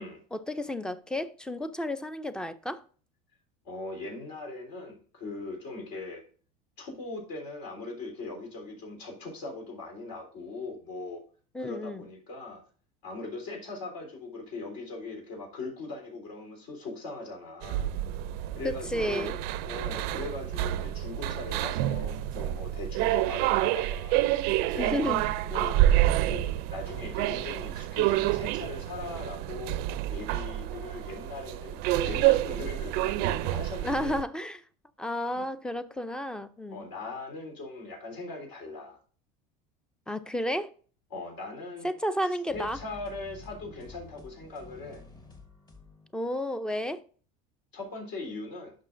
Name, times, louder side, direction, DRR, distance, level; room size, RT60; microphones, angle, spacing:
voice 1, 0.3-2.8 11.5-12.1 18.6-19.4 24.8-25.3 33.8-34.6 35.0-36.9 40.1-40.7 41.8-42.8 46.1-47.0, left 1 dB, 5° left, 0.4 m, -32 dB
voice 2, 3.6-6.2 6.8-11.2 11.6-12.6 13.0-17.9 18.5-24.2 24.6-24.9 25.5-25.8 26.3-29.8 30.1-34.2 35.3-35.4 36.7-39.0 41.1-41.9 42.5-45.0 47.7-48.7, left 3 dB, 70° left, 3.6 m, -40 dB
sound 1, 17.6-34.2, right 14 dB, 60° right, 0.4 m, -28 dB
sound 2, 42.5-46.3, left 3 dB, 20° left, 1.2 m, -50 dB
11.0 x 5.9 x 2.5 m
supercardioid pair, 135°, 19 cm